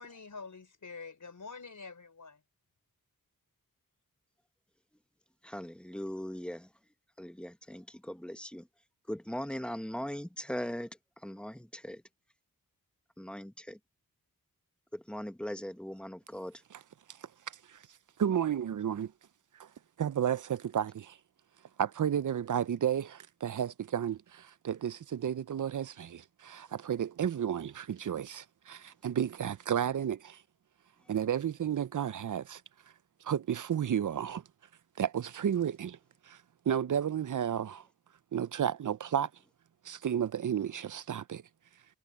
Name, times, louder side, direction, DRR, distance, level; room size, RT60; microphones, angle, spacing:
voice 1, 0.0-2.4, left 4 dB, 60° left, 4.8 m, -46 dB
voice 2, 5.4-6.7 7.2-8.7 9.1-10.9 11.2-12.0 13.2-13.8 14.9-16.6, equal, 5° left, 1.4 m, -39 dB
voice 3, 17.5-17.8 18.2-19.1 19.6-19.7 20.0-21.2 21.8-30.4 31.1-32.6 33.2-34.4 35.0-36.0 36.3-36.4 36.7-37.8 38.3-39.3 39.8-41.4, right 9 dB, 60° right, 0.6 m, -32 dB
cardioid pair, 65°, 35 cm